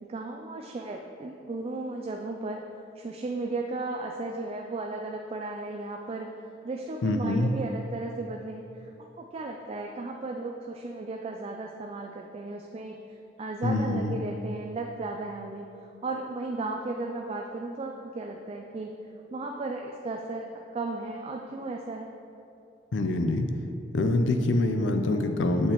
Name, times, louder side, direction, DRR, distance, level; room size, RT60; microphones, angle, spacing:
voice 1, 0.0-2.6 3.0-6.4 6.6-8.7 9.2-15.7 16.0-18.9 19.3-20.5 20.7-22.1, right 2 dB, 30° right, 2 dB, 0.3 m, -35 dB
voice 2, 7.0-7.5 13.6-14.2 22.9-23.5 23.9-25.7, left 2 dB, 75° left, 6 dB, 0.5 m, -25 dB
7.8 x 6.7 x 3.0 m, 2.6 s
head